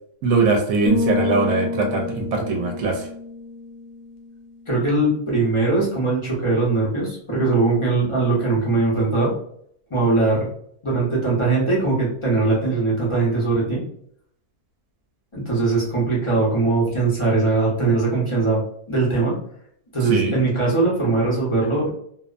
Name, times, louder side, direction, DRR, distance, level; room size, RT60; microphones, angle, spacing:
voice 1, 0.2-3.1 20.1-20.4, right 4 dB, 70° right, 2 dB, 0.9 m, -21 dB
sound 1, 0.9-4.6, left 3 dB, 80° left, 1.1 m, -28 dB
voice 2, 4.7-9.3 9.9-10.5 10.8-13.8 15.3-18.6 18.9-19.4 19.9-21.9, right 3 dB, 35° left, -5 dB, 0.5 m, -20 dB
2.7 x 2.1 x 2.4 m, 0.67 s
omnidirectional pair, 1.6 m